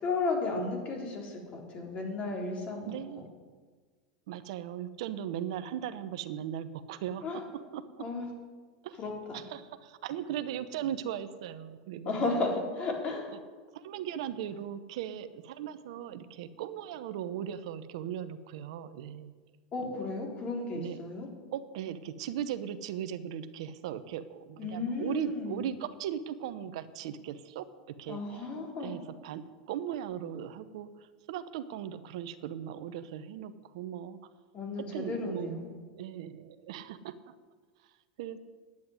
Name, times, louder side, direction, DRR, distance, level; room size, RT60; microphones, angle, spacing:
voice 1, 0.0-3.2 7.2-7.4 8.0-8.3 9.0-9.4 12.1-13.3 19.7-21.3 24.6-25.7 28.1-28.9 34.5-35.7, left 3 dB, 40° left, 0 dB, 3.8 m, -34 dB
voice 2, 2.9-3.3 4.3-7.2 7.7-7.8 8.8-9.0 9.3-12.3 13.7-19.3 19.8-20.0 20.7-21.0 21.5-27.7 28.0-28.2 28.8-30.9 31.3-34.2 34.9-35.6 36.0-37.1 38.2-38.4, right 10 dB, 70° right, 12 dB, 0.8 m, -38 dB
9.7 x 8.6 x 9.5 m, 1.5 s
hypercardioid pair, 105°, 3 cm